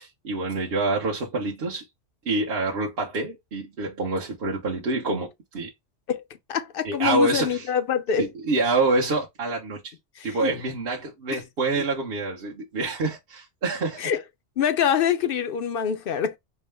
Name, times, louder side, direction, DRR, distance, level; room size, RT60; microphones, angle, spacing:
voice 1, 0.0-1.8 2.2-5.7 6.8-7.7 8.2-9.9 10.2-14.0, right 3 dB, 55° right, 1.1 m, -26 dB
voice 2, 6.5-8.3 10.2-10.5 11.3-11.4 11.8-11.9 14.0-14.2 14.6-16.3, left 8 dB, 60° left, 0.7 m, -25 dB
4.6 x 2.1 x 3.3 m
omnidirectional pair, 1.3 m